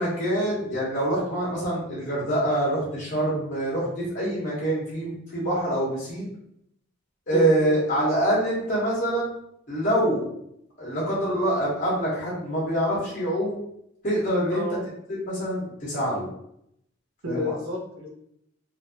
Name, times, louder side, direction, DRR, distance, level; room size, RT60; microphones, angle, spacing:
voice 1, 0.0-6.3 7.3-9.3 9.7-10.3 10.8-13.6 14.0-14.6 15.2-16.2 17.2-17.6, right 1 dB, 40° left, -7 dB, 1.2 m, -25 dB
voice 2, 17.2-18.1, left 3 dB, 80° right, 0 dB, 0.7 m, -30 dB
3.3 x 2.6 x 2.8 m, 0.76 s
head